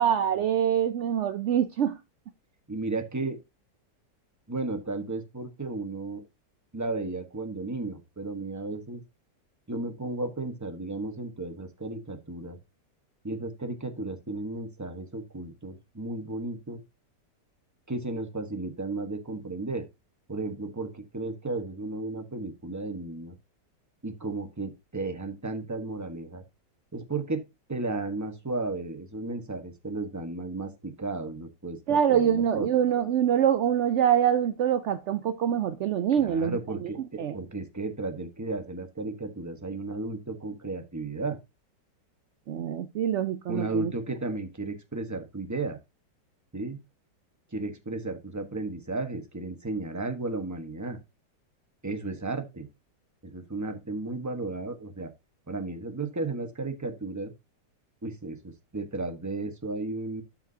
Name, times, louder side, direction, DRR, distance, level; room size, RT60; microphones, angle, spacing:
voice 1, 0.0-2.0 31.9-36.9 37.2-37.3 42.5-43.9, right 9 dB, 75° right, 0.6 m, -25 dB
voice 2, 2.7-3.4 4.5-6.2 6.7-9.0 9.7-12.6 13.2-16.8 17.9-19.9 20.3-23.4 24.0-26.4 26.9-27.4 27.7-32.7 36.2-41.4 43.5-45.8 46.5-46.8 47.5-51.0 51.8-52.7 53.2-55.1 55.5-57.3 58.0-60.2, right 2 dB, 10° right, 1.1 m, -34 dB
12.0 x 5.8 x 2.8 m
omnidirectional pair, 1.9 m